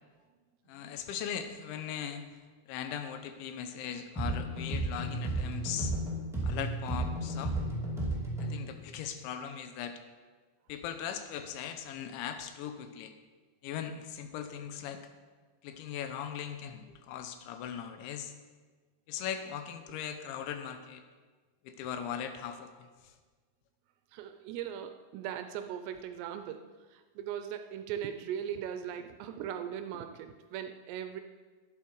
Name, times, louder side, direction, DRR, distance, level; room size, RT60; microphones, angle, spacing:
voice 1, 0.7-2.2 2.7-5.9 6.4-7.6 8.4-10.0 10.7-13.1 13.6-15.0 15.6-18.3 19.1-21.0 21.6-22.9, left 8 dB, 85° left, 8 dB, 3.2 m, -39 dB
sound 1, 4.1-8.7, right 1 dB, ahead, 0.6 m, -33 dB
voice 2, 24.1-31.2, right 9 dB, 80° right, 8 dB, 2.6 m, -39 dB
11.5 x 10.5 x 4.7 m, 1.4 s
omnidirectional pair, 5.2 m